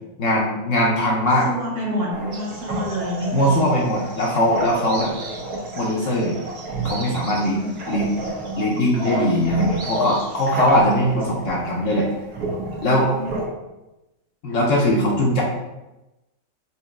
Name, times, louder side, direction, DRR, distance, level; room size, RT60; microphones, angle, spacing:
voice 1, 0.2-1.5 3.3-5.1 5.8-6.3 6.8-7.6 7.9-8.1 8.6-12.1 12.8-13.1 14.4-15.4, left 1 dB, 65° left, -2 dB, 0.9 m, -20 dB
voice 2, 1.4-3.7 5.5-5.7 7.1-7.7 12.7-13.3, equal, 50° right, -4 dB, 0.8 m, -29 dB
sound 1, 2.1-13.5, right 2 dB, 90° right, 1.6 m, -30 dB
sound 2, 2.3-11.0, right 3 dB, 65° right, 1.2 m, -41 dB
4.4 x 2.8 x 3.4 m, 1.0 s
omnidirectional pair, 1.7 m